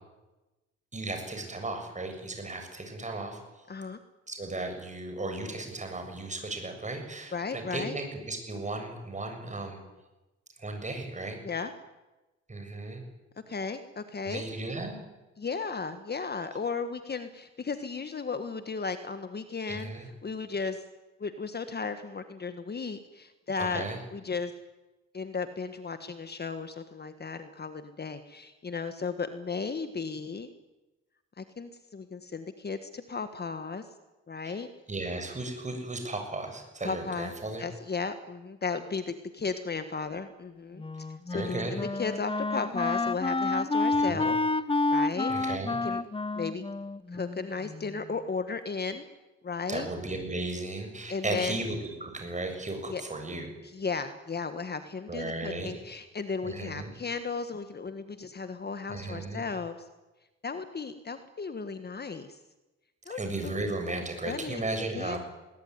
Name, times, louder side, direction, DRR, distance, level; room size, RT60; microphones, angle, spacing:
voice 1, 0.9-3.4 4.3-9.8 10.6-11.4 12.5-13.0 14.3-15.0 19.7-20.1 23.6-24.0 34.4-34.6 34.9-37.7 41.3-41.8 44.1-44.3 45.3-45.8 49.7-53.5 55.1-55.8 56.4-56.9 58.9-59.5 63.1-65.2, right 2 dB, 25° right, 5 dB, 7.2 m, -35 dB
voice 2, 3.7-4.0 7.3-8.0 11.4-11.7 13.5-14.4 15.4-19.9 20.2-20.8 21.2-24.5 25.1-30.5 31.4-33.9 34.3-34.7 36.8-37.3 37.6-40.8 41.3-44.4 44.9-45.3 45.8-46.0 46.3-46.6 47.1-49.0 49.4-49.9 51.1-51.6 52.9-53.0 53.6-59.7 60.4-62.4 63.1-63.5 64.2-64.6 64.9-65.2, left 5 dB, 35° left, 10 dB, 1.6 m, -35 dB
Wind instrument woodwind instrument, 40.8-48.0, left 3 dB, 15° left, 1.0 m, -29 dB
21.0 x 20.0 x 9.8 m, 1.1 s
cardioid pair, 90°, 30 cm